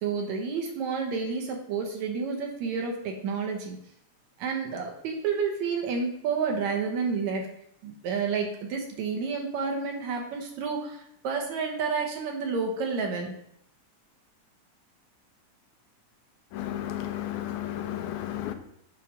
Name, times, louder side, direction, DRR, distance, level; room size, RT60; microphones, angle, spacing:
voice 1, 0.0-3.8 4.4-7.4 7.8-13.3, right 5 dB, 75° right, 2.4 m, -30 dB
voice 2, 16.5-18.5, left 12 dB, 85° left, 2.2 m, -33 dB
8.3 x 3.4 x 6.2 m
omnidirectional pair, 3.4 m